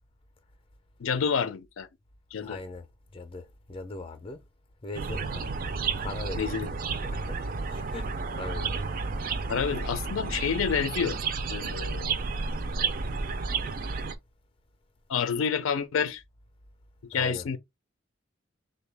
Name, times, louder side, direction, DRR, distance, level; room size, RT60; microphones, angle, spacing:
voice 1, 1.0-1.9 2.3-2.6 6.4-6.7 9.5-11.2 11.5-12.1 15.1-16.2 17.0-17.6, left 6 dB, 85° left, 0.4 m, -28 dB
voice 2, 2.4-2.9 3.1-4.4 4.8-5.4 6.0-6.5 6.9-7.4 7.7-8.8 17.1-17.5, left 3 dB, 25° left, 0.5 m, -40 dB
sound 1, 4.9-14.1, right 4 dB, 45° right, 0.4 m, -31 dB
3.8 x 2.2 x 3.3 m
head